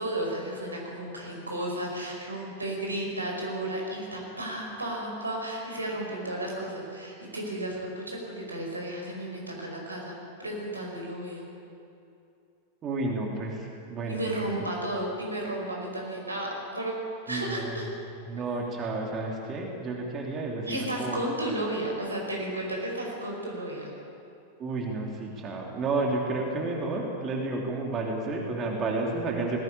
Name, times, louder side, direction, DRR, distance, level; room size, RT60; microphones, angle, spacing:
voice 1, 0.0-11.5 14.1-16.9 17.3-17.9 20.6-23.9, right 1 dB, 80° right, -1 dB, 5.2 m, -33 dB
voice 2, 12.8-14.4 17.3-17.8 18.3-21.2 24.6-29.6, right 3 dB, 30° right, 0 dB, 3.0 m, -31 dB
19.5 x 17.5 x 8.7 m, 2.6 s
figure-of-eight pair, 90°, 0 cm